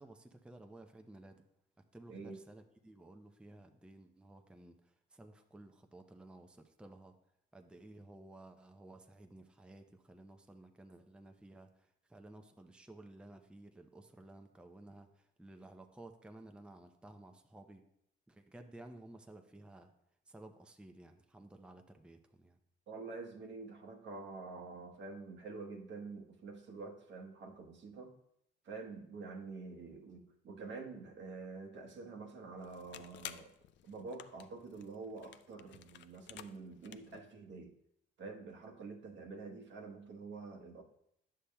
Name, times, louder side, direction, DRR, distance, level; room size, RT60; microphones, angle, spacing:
voice 1, 0.0-1.4 1.9-7.2 7.5-17.8 18.3-19.9 20.3-22.6, right 2 dB, 5° right, 5 dB, 0.5 m, -55 dB
voice 2, 2.1-2.4 22.9-28.1 28.6-33.5 33.8-37.7 38.2-40.8, right 4 dB, 65° right, 3 dB, 1.1 m, -47 dB
sound 1, 32.6-37.2, left 11 dB, 65° left, 0.4 m, -53 dB
9.8 x 6.7 x 2.2 m, 0.75 s
cardioid pair, 90°, 20 cm